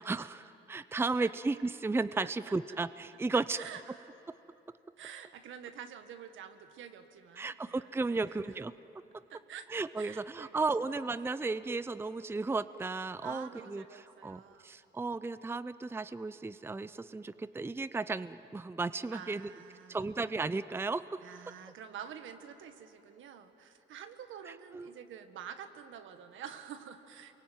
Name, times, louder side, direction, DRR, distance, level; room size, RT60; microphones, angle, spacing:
voice 1, 0.0-3.6 7.4-8.7 9.7-19.5 19.9-21.0 24.5-24.9, right 3 dB, 10° right, 14 dB, 0.5 m, -34 dB
voice 2, 1.0-1.3 2.2-2.5 3.3-4.1 5.0-8.6 9.3-9.7 10.0-10.6 11.2-11.4 13.2-14.7 19.1-20.0 21.2-27.3, right 8 dB, 80° right, 8 dB, 1.7 m, -48 dB
27.5 x 22.5 x 9.3 m, 3.0 s
cardioid pair, 90°, 20 cm